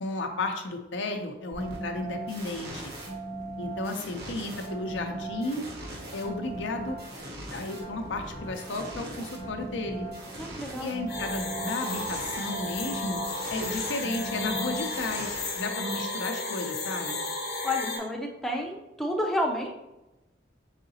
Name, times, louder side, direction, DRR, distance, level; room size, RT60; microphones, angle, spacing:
voice 1, 0.0-2.8 3.6-5.6 6.1-7.0 7.5-10.1 10.8-13.2 13.5-17.2, left 2 dB, 85° left, 5 dB, 0.6 m, -33 dB
sound 1, 1.5-16.2, right 2 dB, 55° right, 1.2 m, -39 dB
voice 2, 10.4-10.9 17.6-19.7, left 1 dB, ahead, -1 dB, 0.5 m, -30 dB
sound 2, 11.1-18.0, left 3 dB, 60° left, 0.9 m, -33 dB
4.9 x 3.8 x 2.7 m, 0.97 s
head